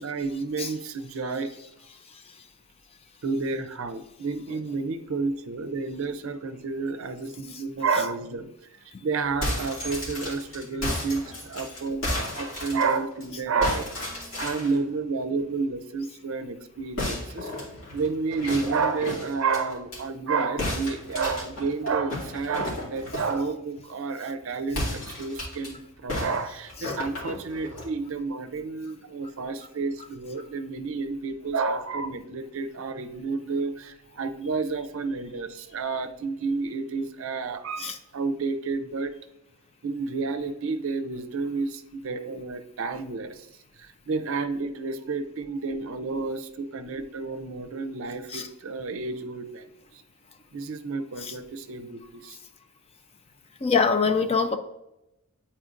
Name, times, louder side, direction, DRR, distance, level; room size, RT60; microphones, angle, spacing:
voice 1, 0.0-1.6 3.2-8.5 9.0-17.5 17.9-39.1 39.8-43.4 43.8-49.7 50.5-52.4, right 4 dB, 60° right, 9 dB, 0.5 m, -30 dB
voice 2, 2.1-2.4 7.5-7.6 8.9-9.0 26.8-27.0 37.8-38.0 48.3-48.5 51.2-51.4 53.6-54.6, left 5 dB, 25° left, 7 dB, 0.4 m, -26 dB
sound 1, 9.3-13.2 13.6-14.8 17.0-20.0 20.6-23.4 24.7-25.7 26.1-27.9, left 1 dB, 60° left, 2.3 m, -33 dB
9.2 x 4.3 x 2.5 m, 0.88 s
head